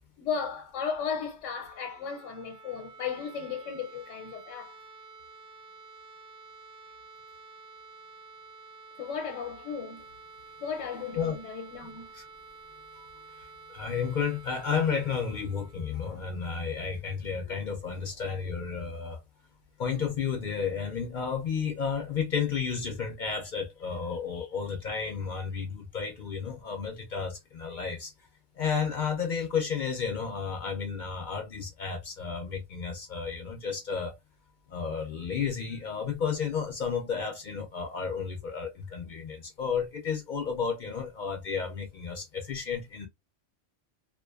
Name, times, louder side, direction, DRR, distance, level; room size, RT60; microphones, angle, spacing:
voice 1, 0.2-4.7 9.0-10.0 10.6-12.1 24.3-24.5, left 6 dB, 80° left, 1.0 m, -35 dB
sound 1, 1.5-17.3, right 4 dB, 35° right, 0.8 m, -51 dB
voice 2, 13.7-19.2 19.8-28.1 28.6-34.1 34.7-43.1, left 6 dB, 55° left, 0.5 m, -32 dB
2.4 x 2.2 x 2.3 m
omnidirectional pair, 1.2 m